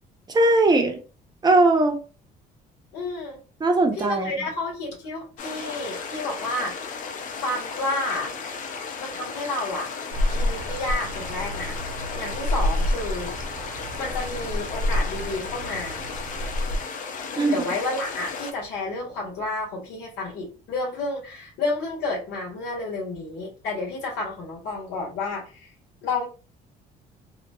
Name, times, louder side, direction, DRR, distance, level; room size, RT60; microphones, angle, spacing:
voice 1, 0.3-1.0 1.4-2.0 3.6-4.3 17.4-17.6, right 2 dB, 25° right, 3 dB, 0.6 m, -19 dB
voice 2, 2.9-3.4 3.9-6.8 7.4-8.3 9.0-9.9 10.3-11.8 12.1-13.3 13.9-16.0 17.3-25.7 26.0-26.3, left 2 dB, 85° left, -5 dB, 1.4 m, -30 dB
sound 1, 5.4-18.5, left 5 dB, 50° left, 0.5 m, -35 dB
sound 2, 10.1-16.8, left 1 dB, 80° right, 0.9 m, -28 dB
2.9 x 2.2 x 2.2 m, 0.35 s
cardioid pair, 110°, 17 cm